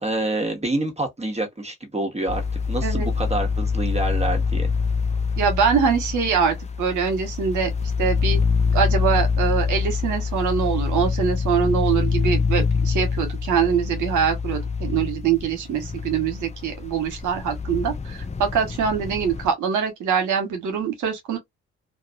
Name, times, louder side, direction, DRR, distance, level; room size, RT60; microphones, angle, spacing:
voice 1, 0.0-4.7, right 2 dB, 20° right, 1.6 m, -27 dB
sound 1, 2.3-19.5, left 5 dB, 20° left, 0.8 m, -25 dB
voice 2, 5.4-8.4 8.7-21.4, right 7 dB, 70° right, 1.3 m, -23 dB
3.0 x 2.5 x 2.4 m
hypercardioid pair, 45°, 32 cm